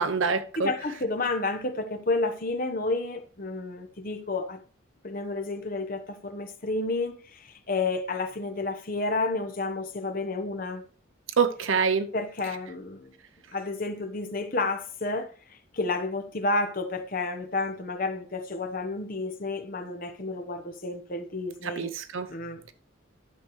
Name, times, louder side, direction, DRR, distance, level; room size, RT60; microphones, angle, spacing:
voice 1, 0.0-0.7 11.4-12.1 21.6-22.3, right 5 dB, 75° right, 0.7 m, -26 dB
voice 2, 0.6-4.6 5.0-10.8 12.1-13.1 13.5-15.3 15.7-21.9 22.3-22.6, left 3 dB, 45° left, 1.0 m, -30 dB
12.0 x 6.6 x 3.1 m
head